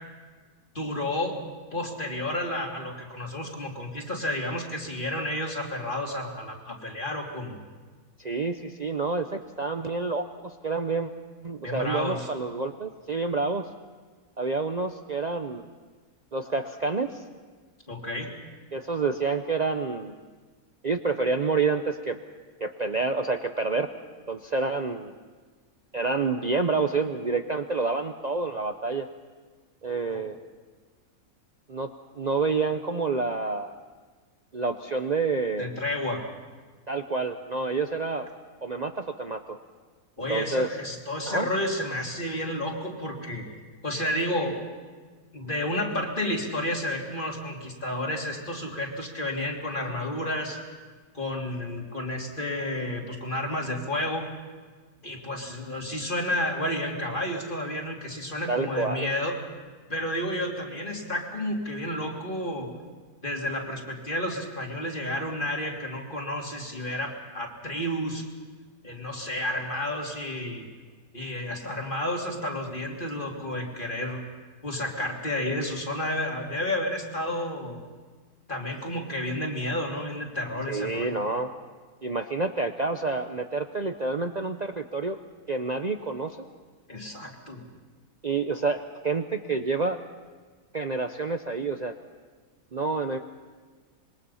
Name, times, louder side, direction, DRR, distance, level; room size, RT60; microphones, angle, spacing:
voice 1, 0.7-1.4 1.7-7.6 11.6-12.3 17.9-18.3 30.1-30.2 35.6-36.2 40.2-43.4 43.8-44.6 45.3-50.6 51.1-54.3 55.0-59.4 59.9-62.7 63.2-68.2 68.8-70.7 71.1-74.2 74.6-77.8 78.5-81.2 86.9-87.6, left 1 dB, 35° left, 0 dB, 3.2 m, -31 dB
voice 2, 8.2-11.1 11.4-13.7 14.4-15.7 16.3-17.2 18.7-20.2 20.8-22.2 22.6-23.9 24.3-25.2 25.9-29.1 29.8-30.4 31.7-33.7 34.5-35.7 36.9-38.3 38.6-39.6 40.3-40.7 41.3-41.5 58.5-59.1 80.7-81.5 82.0-85.2 85.5-86.4 88.2-90.0 90.7-92.0 92.7-93.2, right 4 dB, 40° right, 5 dB, 0.7 m, -28 dB
26.0 x 22.0 x 5.6 m, 1.4 s
omnidirectional pair, 1.6 m